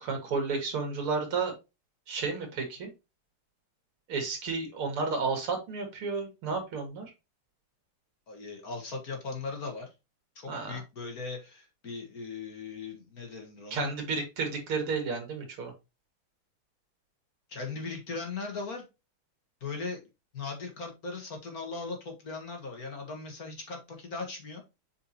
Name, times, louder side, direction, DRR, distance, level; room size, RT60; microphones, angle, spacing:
voice 1, 0.0-1.5 2.1-2.9 4.1-7.1 10.5-10.8 13.7-15.7, right 4 dB, 85° right, 4 dB, 3.0 m, -32 dB
voice 2, 8.3-9.9 10.4-13.9 17.5-18.8 19.6-20.0 20.3-24.6, left 4 dB, 45° left, 3 dB, 2.0 m, -38 dB
7.0 x 5.0 x 2.9 m, 0.25 s
omnidirectional pair, 2.3 m